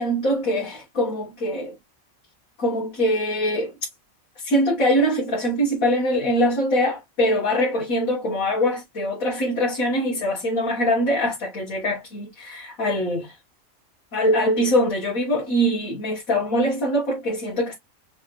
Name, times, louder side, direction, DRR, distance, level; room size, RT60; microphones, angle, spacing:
voice 1, 0.0-1.7 2.6-3.7 4.4-13.4 14.1-17.8, equal, 85° left, 1.9 m, -23 dB
4.5 x 4.0 x 2.5 m
omnidirectional pair, 1.4 m